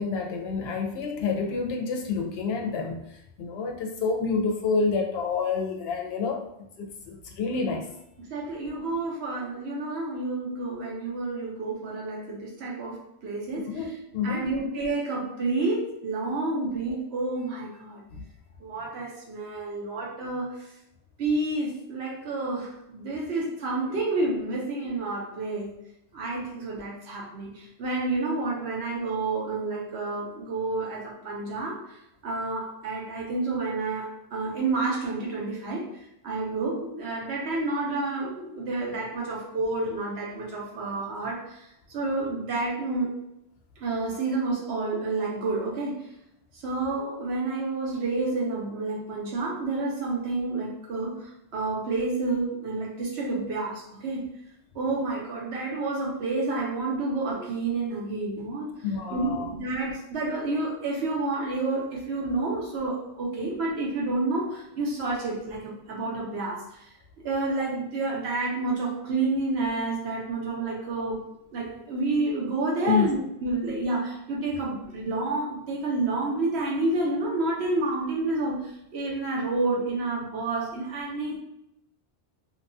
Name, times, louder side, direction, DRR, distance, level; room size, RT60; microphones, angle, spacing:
voice 1, 0.0-6.4 6.8-7.9 13.7-14.5 18.1-18.2 58.8-59.5 72.9-73.1, left 5 dB, 70° left, 2 dB, 0.7 m, -28 dB
voice 2, 8.2-13.8 14.2-18.0 18.6-20.7 21.2-25.7 26.1-32.0 32.2-43.1 43.8-46.0 46.5-54.2 54.7-58.7 59.1-66.9 67.2-71.2 71.5-81.4, right 3 dB, 70° right, -3 dB, 1.0 m, -29 dB
2.8 x 2.2 x 2.6 m, 0.82 s
omnidirectional pair, 1.2 m